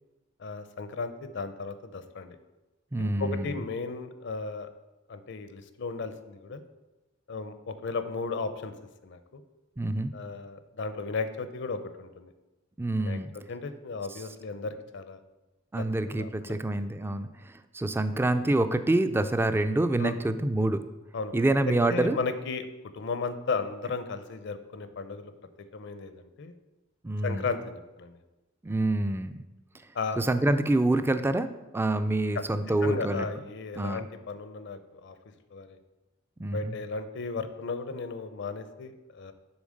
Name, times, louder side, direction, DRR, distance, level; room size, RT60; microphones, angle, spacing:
voice 1, 0.4-2.4 3.0-4.7 5.1-6.6 7.3-8.7 9.0-9.4 10.1-12.3 13.0-15.2 15.7-16.6 17.0-17.1 20.0-20.2 21.1-21.3 21.9-22.7 22.9-25.3 25.7-26.5 27.2-28.2 29.9-30.3 32.3-32.4 32.8-35.2 35.5-35.8 36.4-39.3, left 4 dB, 60° left, 11 dB, 0.6 m, -35 dB
voice 2, 2.9-3.5 9.8-10.1 12.8-13.3 15.7-17.3 17.7-20.8 21.3-22.2 27.0-27.4 28.6-29.3 30.2-31.5 31.7-33.3 33.8-34.0 36.4-36.8, right 2 dB, 10° right, 11 dB, 0.3 m, -26 dB
7.2 x 3.8 x 6.4 m, 1.1 s
head